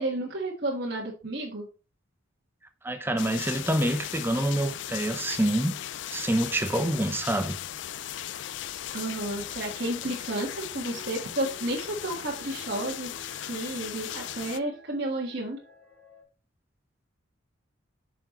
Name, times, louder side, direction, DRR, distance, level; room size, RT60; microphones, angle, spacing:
voice 1, 0.0-1.7 8.9-13.1 13.5-15.6, right 1 dB, 55° right, 1.6 m, -32 dB
voice 2, 2.8-5.8 6.1-7.5, right 1 dB, 10° right, 0.8 m, -26 dB
sound 1, 3.2-14.6, left 11 dB, 60° left, 0.4 m, -37 dB
sound 2, 8.9-16.2, equal, 5° left, 3.3 m, -52 dB
8.9 x 6.0 x 3.0 m
head